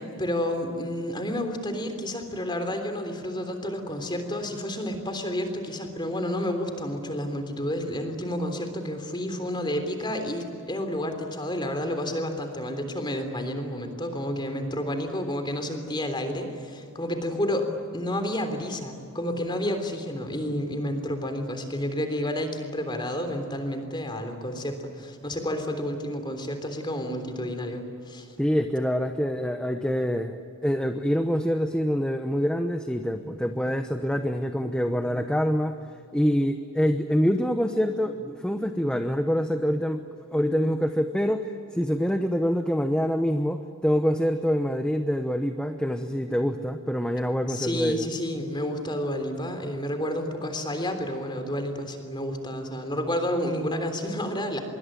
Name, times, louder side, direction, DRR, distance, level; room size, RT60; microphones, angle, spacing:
voice 1, 0.0-28.3 47.5-54.6, left 1 dB, 20° left, 6 dB, 3.4 m, -30 dB
voice 2, 28.4-30.4 30.6-35.8 36.1-40.0 40.3-48.1, equal, 5° left, 7 dB, 0.9 m, -25 dB
25.5 x 23.0 x 9.2 m, 2.5 s
head